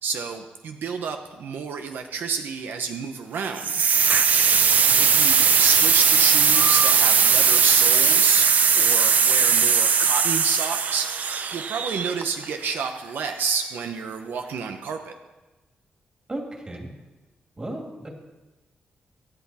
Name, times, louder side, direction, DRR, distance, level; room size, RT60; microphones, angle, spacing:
voice 1, 0.0-3.7 4.9-8.5 8.7-11.1 11.5-15.2, right 5 dB, 80° right, 6 dB, 0.9 m, -29 dB
sound 1, 3.6-12.4, right 6 dB, 55° right, 0.6 m, -19 dB
voice 2, 16.3-16.9 17.6-18.1, right 1 dB, 25° right, 1 dB, 2.5 m, -35 dB
24.5 x 8.3 x 4.2 m, 1.1 s
wide cardioid pair, 130°, 3 cm